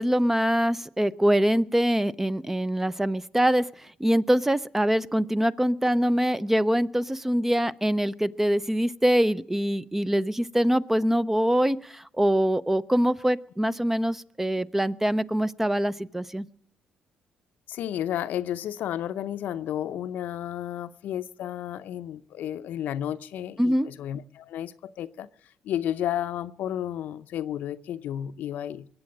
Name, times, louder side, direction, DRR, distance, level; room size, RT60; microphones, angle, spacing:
voice 1, 0.0-16.5 23.6-23.9, equal, 10° right, 15 dB, 0.6 m, -24 dB
voice 2, 17.7-25.3 25.6-28.9, left 11 dB, 70° left, 12 dB, 0.6 m, -32 dB
21.5 x 7.8 x 8.6 m, 0.67 s
supercardioid pair, 60°, 3 cm